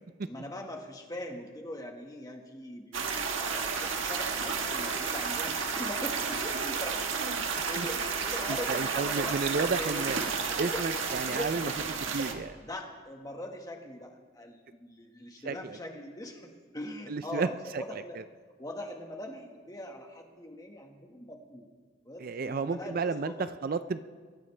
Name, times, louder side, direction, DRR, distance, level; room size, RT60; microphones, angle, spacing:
voice 1, 0.3-7.3 7.7-10.0 10.5-11.8 12.2-18.2 18.6-21.7 22.0-23.5, left 1 dB, 20° left, 2 dB, 1.5 m, -41 dB
sound 1, 2.9-12.3, right 5 dB, 75° right, 1.5 m, -32 dB
voice 2, 8.5-10.2 10.6-11.7 12.1-12.6 15.5-15.8 17.1-17.5 17.7-17.8 22.2-24.0, right 4 dB, 45° right, 12 dB, 0.4 m, -32 dB
23.0 x 14.5 x 3.3 m, 1.5 s
head